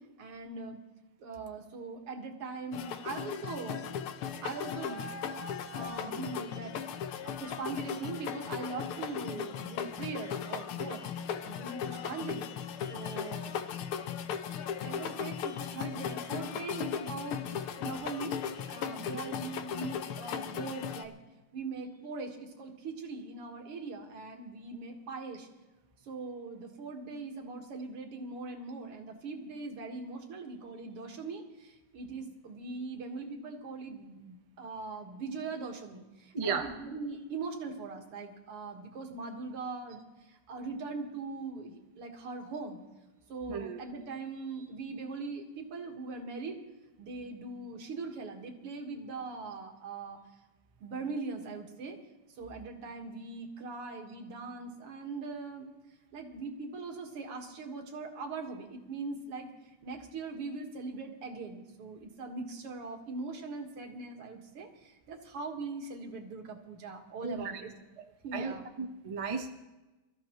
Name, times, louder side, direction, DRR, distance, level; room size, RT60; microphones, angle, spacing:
voice 1, 0.2-0.8 1.2-3.8 4.4-5.0 5.7-6.8 7.2-11.1 11.4-12.5 12.9-13.5 14.8-17.5 17.8-18.4 18.7-21.2 21.5-25.5 26.0-42.8 43.3-46.6 47.0-50.2 50.8-52.0 52.4-55.7 56.1-67.7 68.2-68.7, right 4 dB, 90° right, 3 dB, 2.6 m, -41 dB
sound 1, 2.7-21.0, left 8 dB, 80° left, 1.7 m, -37 dB
voice 2, 36.3-36.7 43.5-43.8 67.2-67.6 68.0-68.1 68.3-69.5, right 5 dB, 45° right, 5 dB, 0.4 m, -35 dB
24.0 x 14.0 x 3.0 m, 1.1 s
omnidirectional pair, 2.4 m